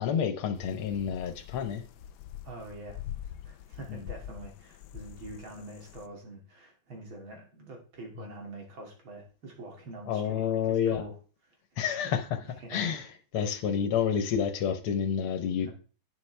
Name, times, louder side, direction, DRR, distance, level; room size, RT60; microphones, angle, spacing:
voice 1, 0.0-1.8 3.9-4.0 10.1-11.1 11.8-12.2 12.7-13.0 13.3-15.7, left 8 dB, 90° left, 9 dB, 2.0 m, -29 dB
sound 1, 0.5-6.1, left 11 dB, 70° left, 1.0 m, -44 dB
voice 2, 2.4-11.1 11.5-11.6 11.8-12.1 12.6-12.9 13.5-13.6 15.6-15.7, right 2 dB, 70° right, 1 dB, 3.4 m, -45 dB
11.0 x 9.2 x 3.4 m, 0.36 s
omnidirectional pair, 2.3 m